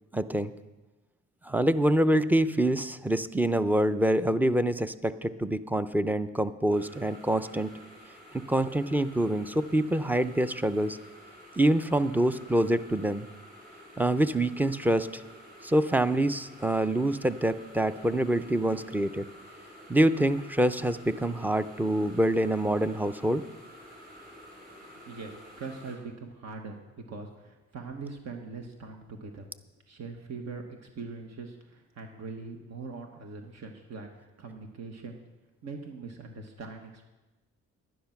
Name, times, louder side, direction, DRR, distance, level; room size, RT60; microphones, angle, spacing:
voice 1, 0.1-0.5 1.4-7.7 8.3-11.0 11.6-13.3 14.0-15.2 15.6-19.2 19.9-23.4, right 1 dB, 5° right, 13 dB, 0.5 m, -26 dB
sound 1, 6.7-26.0, equal, 30° right, 5.4 m, -50 dB
voice 2, 24.9-29.5 29.9-35.2 35.6-37.1, right 4 dB, 60° right, 3 dB, 1.4 m, -42 dB
11.0 x 10.0 x 5.8 m, 1.1 s
cardioid pair, 90°, 30 cm